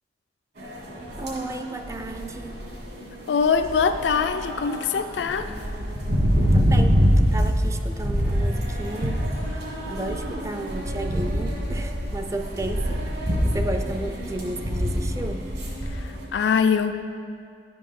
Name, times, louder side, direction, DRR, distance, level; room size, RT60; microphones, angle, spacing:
sound 1, 0.6-16.1, equal, 60° right, 2.0 m, -25 dB
voice 1, 1.2-2.6 6.4-7.0 7.3-9.3 9.9-15.5, right 2 dB, 15° right, 7 dB, 0.4 m, -33 dB
voice 2, 3.3-5.5 15.9-16.9, left 6 dB, 70° left, 8 dB, 0.4 m, -23 dB
11.0 x 5.3 x 5.5 m, 2.2 s
head